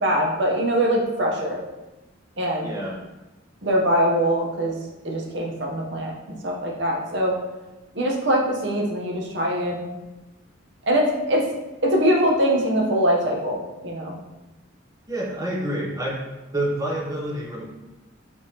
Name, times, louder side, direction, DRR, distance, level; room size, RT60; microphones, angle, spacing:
voice 1, 0.0-1.6 2.4-2.7 3.6-4.8 5.0-6.1 6.4-7.3 8.0-9.9 10.9-11.4 11.8-13.6 13.8-14.2, equal, 60° right, -1 dB, 0.8 m, -22 dB
voice 2, 2.6-3.0 15.1-16.2 16.5-17.6, right 1 dB, 15° right, -3 dB, 0.8 m, -27 dB
5.0 x 3.4 x 2.8 m, 1.1 s
head